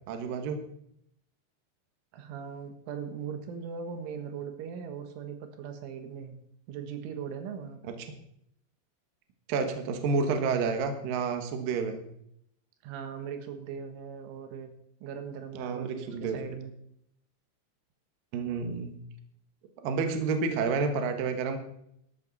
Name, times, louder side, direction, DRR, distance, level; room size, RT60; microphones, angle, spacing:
voice 1, 0.1-0.6 9.5-12.0 15.5-16.4 18.3-19.0 19.8-21.6, right 4 dB, 65° right, 6 dB, 2.5 m, -29 dB
voice 2, 2.1-6.4 6.7-7.8 12.8-14.7 15.0-16.7 20.5-20.7, right 7 dB, 85° right, 7 dB, 3.9 m, -39 dB
13.5 x 12.0 x 4.1 m, 0.74 s
omnidirectional pair, 5.5 m